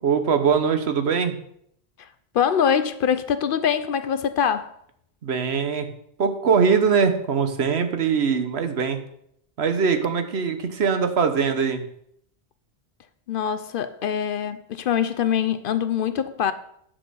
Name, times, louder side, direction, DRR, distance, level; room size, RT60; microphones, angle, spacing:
voice 1, 0.0-1.4 5.2-5.9 6.2-9.0 9.6-11.9, right 6 dB, 75° right, 1.2 m, -22 dB
voice 2, 2.3-4.8 13.3-16.5, left 8 dB, 60° left, 0.7 m, -24 dB
9.3 x 4.2 x 6.8 m
omnidirectional pair, 1.1 m